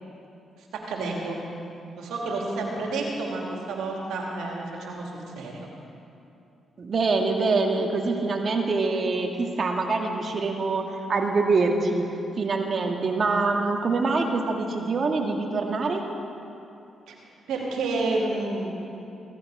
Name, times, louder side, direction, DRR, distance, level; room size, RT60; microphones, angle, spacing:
voice 1, 0.6-1.4 2.0-3.4 3.7-5.7 17.1-17.2 17.5-18.7, right 3 dB, 85° right, -1 dB, 2.6 m, -30 dB
voice 2, 6.8-12.1 12.4-16.0, right 3 dB, 50° right, 3 dB, 1.8 m, -25 dB
16.5 x 14.5 x 4.8 m, 2.8 s
supercardioid pair, 65°, 0 cm